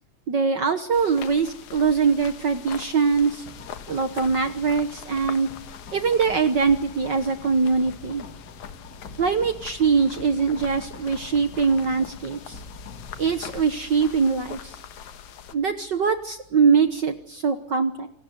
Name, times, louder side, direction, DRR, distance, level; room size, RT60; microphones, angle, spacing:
voice 1, 0.3-3.4 3.9-5.5 5.9-8.3 9.2-12.6 13.2-14.8 15.5-18.1, right 5 dB, 60° right, 9 dB, 1.1 m, -22 dB
sound 1, 0.9-15.6, left 9 dB, 70° left, 2.7 m, -42 dB
sound 2, 3.4-17.3, left 4 dB, 35° left, 2.4 m, -46 dB
28.0 x 19.0 x 9.4 m, 0.73 s
omnidirectional pair, 3.6 m